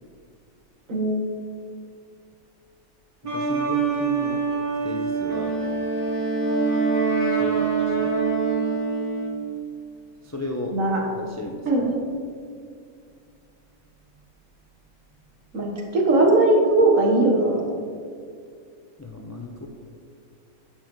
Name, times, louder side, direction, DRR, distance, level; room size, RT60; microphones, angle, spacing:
voice 1, 0.9-1.2 10.7-11.0 11.7-12.0 15.5-17.7, right 2 dB, 65° right, -1 dB, 1.9 m, -19 dB
sound 1, 3.2-9.6, right 5 dB, 80° right, 1.9 m, -26 dB
voice 2, 3.3-4.4 4.8-5.6 7.4-8.2 10.2-10.8 11.1-11.7 19.0-19.7, left 2 dB, 25° left, 1 dB, 0.3 m, -34 dB
Wind instrument woodwind instrument, 5.3-9.5, right 2 dB, 70° left, 1.6 m, -28 dB
11.5 x 7.7 x 3.1 m, 2.2 s
omnidirectional pair, 1.5 m